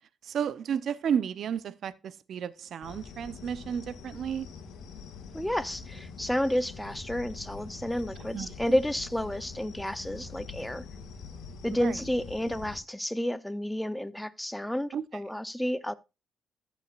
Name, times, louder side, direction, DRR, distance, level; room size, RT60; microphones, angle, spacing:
voice 1, 0.2-4.5 8.3-8.5 11.7-12.0 14.9-15.0, right 8 dB, 65° right, 0.8 m, -32 dB
sound 1, 2.8-12.8, left 5 dB, 80° left, 2.0 m, -44 dB
voice 2, 5.3-10.9 11.6-15.9, equal, 5° left, 0.8 m, -31 dB
14.5 x 7.3 x 2.5 m
cardioid pair, 90°, 0 cm